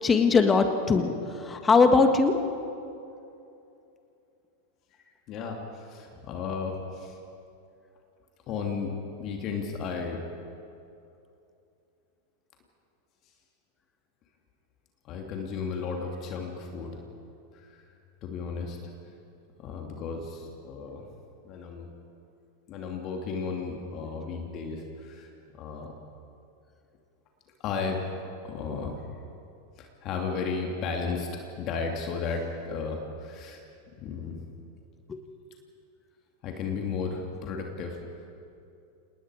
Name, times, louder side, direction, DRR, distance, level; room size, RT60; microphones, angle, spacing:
voice 1, 0.0-2.3 35.1-35.2, left 4 dB, 20° left, 7 dB, 1.7 m, -21 dB
voice 2, 5.3-7.2 8.5-10.2 15.0-17.0 17.5-17.8 18.2-18.8 19.6-21.1 21.4-21.9 22.7-25.9 27.6-28.1 28.4-29.0 29.8-31.3 31.6-33.6 33.9-34.4 36.4-38.0, left 5 dB, 45° left, 2 dB, 2.7 m, -34 dB
28.0 x 19.5 x 5.0 m, 2.7 s
hypercardioid pair, 90°, 0 cm